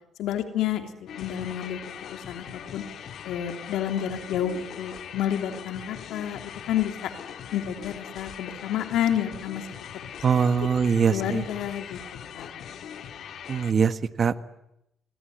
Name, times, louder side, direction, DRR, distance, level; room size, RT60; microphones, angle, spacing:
voice 1, 0.2-0.9 1.2-1.8 2.1-2.8 3.2-7.1 7.5-9.6 11.1-12.0 12.3-12.6, left 10 dB, 85° left, 6 dB, 3.1 m, -29 dB
sound 1, 1.1-13.7, left 8 dB, 70° left, 2.4 m, -41 dB
voice 2, 10.2-11.4 13.5-14.4, right 6 dB, 45° right, 12 dB, 1.5 m, -22 dB
26.5 x 23.5 x 9.4 m, 0.84 s
cardioid pair, 90°, 0 cm